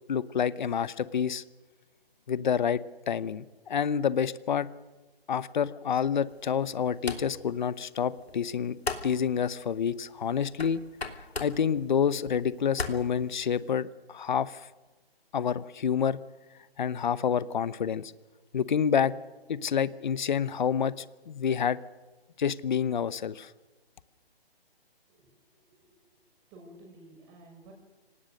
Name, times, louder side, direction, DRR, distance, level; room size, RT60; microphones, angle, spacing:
voice 1, 0.1-1.4 2.3-4.7 5.3-8.8 9.0-10.8 11.4-14.7 15.3-16.2 16.8-18.1 18.5-19.1 19.5-21.8 22.4-23.5, left 7 dB, 50° left, 18 dB, 0.9 m, -28 dB
sound 1, 6.3-13.8, left 3 dB, 85° left, 3.1 m, -41 dB
voice 2, 25.1-26.1 26.5-27.7, right 1 dB, 20° right, 1 dB, 6.4 m, -53 dB
26.0 x 18.5 x 6.5 m, 1.2 s
figure-of-eight pair, 150°, 30 cm